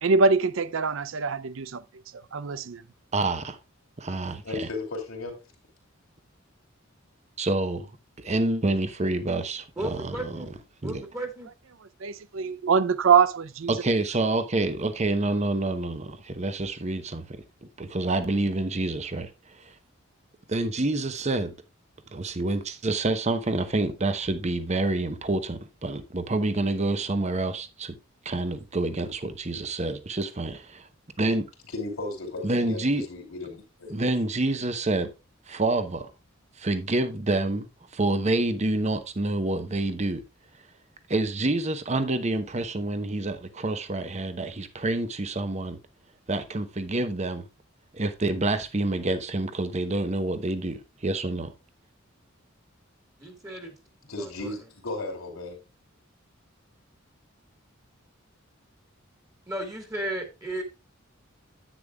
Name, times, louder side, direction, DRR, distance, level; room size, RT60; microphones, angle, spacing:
voice 1, 0.0-1.8 2.1-2.8 11.8-13.7, right 5 dB, 70° right, 0.5 m, -23 dB
voice 2, 3.1-3.6 4.0-4.7 7.4-7.9 8.2-10.4 10.8-11.0 13.7-19.7 20.5-21.5 22.1-27.9 28.2-30.9 31.2-31.5 32.4-33.0 33.9-35.1 35.5-36.1 36.6-37.7 37.9-40.2 41.1-45.8 46.3-47.5 47.9-51.5, right 2 dB, 35° right, 0.9 m, -27 dB
voice 3, 4.4-5.3 31.7-34.0 54.1-55.6, left 2 dB, 90° left, 2.9 m, -35 dB
voice 4, 9.8-10.5 10.8-11.5 53.2-53.7 54.2-54.7 59.5-60.6, right 1 dB, 15° right, 1.7 m, -34 dB
10.0 x 8.8 x 2.3 m
head